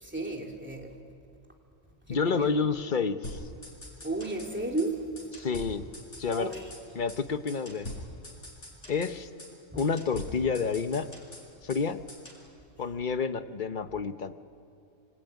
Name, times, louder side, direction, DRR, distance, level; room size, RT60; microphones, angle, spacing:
voice 1, 0.0-1.0 2.1-2.6 4.0-5.1 6.3-6.7 9.7-9.8, right 2 dB, 10° right, 1 dB, 2.8 m, -33 dB
voice 2, 2.1-3.4 5.4-5.8 6.2-6.5 6.9-7.9 8.9-9.3 9.7-11.1 11.6-12.0 12.8-14.3, left 5 dB, 45° left, 10 dB, 1.1 m, -29 dB
sound 1, 3.2-4.5 4.8-4.9 5.2-6.8 7.1-7.2 7.5-9.1 9.4-9.5 9.8-11.8 12.1-12.4, left 1 dB, 80° left, 5.8 m, -43 dB
26.5 x 23.5 x 9.3 m, 2.6 s
omnidirectional pair, 1.2 m